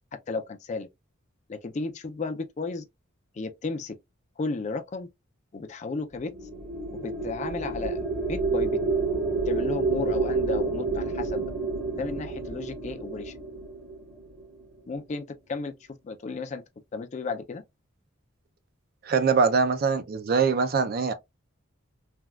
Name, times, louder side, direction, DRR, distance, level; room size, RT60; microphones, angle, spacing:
voice 1, 0.3-0.9 1.5-2.8 3.4-3.9 4.4-5.1 5.5-6.3 7.0-8.8 9.5-11.5 12.0-13.3 14.9-15.7 16.0-16.6 16.9-17.6, left 4 dB, 35° left, 0.3 m, -33 dB
sound 1, 6.1-14.7, right 3 dB, 70° right, 1.2 m, -29 dB
voice 2, 19.0-21.1, right 5 dB, 45° right, 0.4 m, -23 dB
3.3 x 2.2 x 2.2 m
head